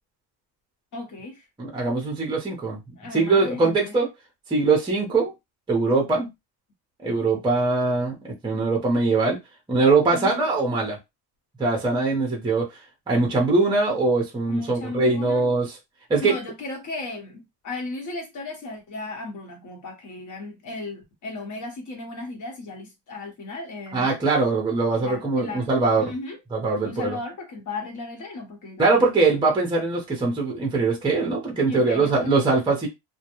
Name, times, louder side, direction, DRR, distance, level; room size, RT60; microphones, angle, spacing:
voice 1, 0.9-1.4 3.0-4.0 10.1-10.5 14.5-15.5 16.2-24.1 25.0-25.7 26.0-26.4 26.8-29.1 31.7-32.4, left 2 dB, 40° left, 1.1 m, -35 dB
voice 2, 1.6-2.8 3.1-4.1 4.5-5.3 5.7-6.3 7.0-8.1 8.4-9.4 9.7-11.0 11.6-12.7 13.1-15.7 16.1-16.3 23.9-26.1 26.5-27.2 28.8-32.9, right 3 dB, 10° right, 0.7 m, -22 dB
2.3 x 2.1 x 2.9 m
cardioid pair, 130°, 44 cm